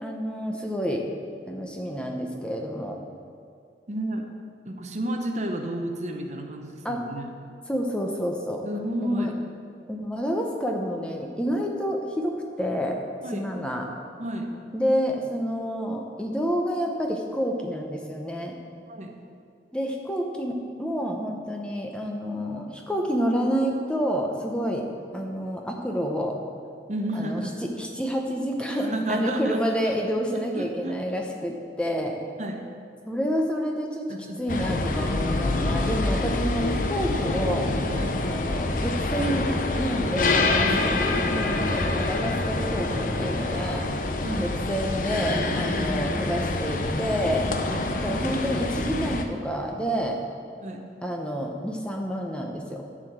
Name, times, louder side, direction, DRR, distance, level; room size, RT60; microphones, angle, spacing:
voice 1, 0.0-1.0 1.5-3.0 6.8-7.0 7.7-8.7 9.0-9.3 9.9-13.0 13.3-13.9 14.7-18.6 19.7-24.9 25.1-26.4 27.1-27.4 27.8-32.2 33.1-37.7 38.2-39.5 39.8-43.9 44.4-47.5 47.9-50.2 51.0-52.9, equal, 5° left, 1 dB, 0.7 m, -29 dB
voice 2, 3.9-4.3 4.6-7.3 8.6-9.4 13.2-13.5 14.2-14.5 18.9-19.2 26.9-27.6 28.7-29.8 30.5-30.9 32.4-32.6 34.1-34.4 37.9-38.3 40.6-40.9 44.2-44.5 45.6-46.0 47.7-47.9 50.6-50.9, right 1 dB, 40° right, 4 dB, 0.8 m, -31 dB
sound 1, 34.5-49.2, left 2 dB, 45° left, 0.7 m, -26 dB
11.0 x 4.9 x 8.0 m, 2.4 s
head